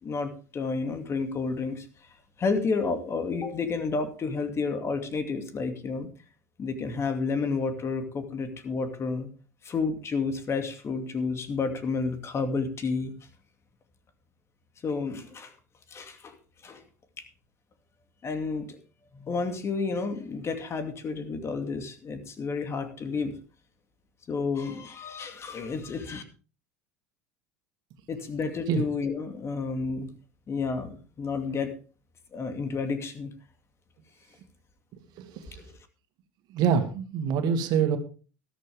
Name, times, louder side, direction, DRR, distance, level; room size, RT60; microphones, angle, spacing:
voice 1, 0.0-1.9 2.4-6.1 6.6-9.3 9.6-13.1 14.8-15.5 15.9-16.4 16.6-16.8 17.2-17.3 18.2-18.8 19.1-23.3 24.3-26.2 28.1-30.1 30.5-31.7 32.3-33.3, left 4 dB, 35° left, 8 dB, 2.5 m, -30 dB
voice 2, 35.2-35.6 36.5-38.0, right 7 dB, 55° right, 7 dB, 2.4 m, -26 dB
13.5 x 13.0 x 3.6 m, 0.36 s
hypercardioid pair, 80°, 8 cm